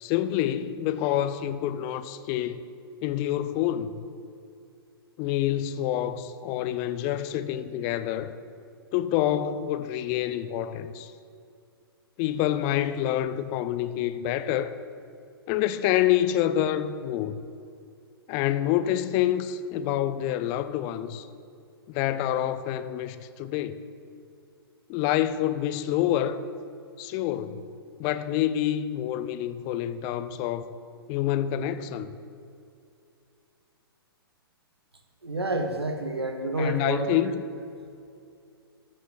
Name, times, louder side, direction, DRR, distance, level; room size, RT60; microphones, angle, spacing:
voice 1, 0.0-2.6 3.0-4.0 5.2-8.4 8.9-11.1 12.2-14.8 15.5-17.4 18.3-21.3 21.9-23.8 24.9-26.4 27.0-27.7 28.0-30.7 31.1-32.1 36.5-37.3, left 11 dB, 25° left, 0.4 m, -27 dB
voice 2, 35.2-37.0, right 2 dB, 80° right, 0.9 m, -29 dB
14.0 x 7.4 x 3.2 m
figure-of-eight pair, 115°, 13 cm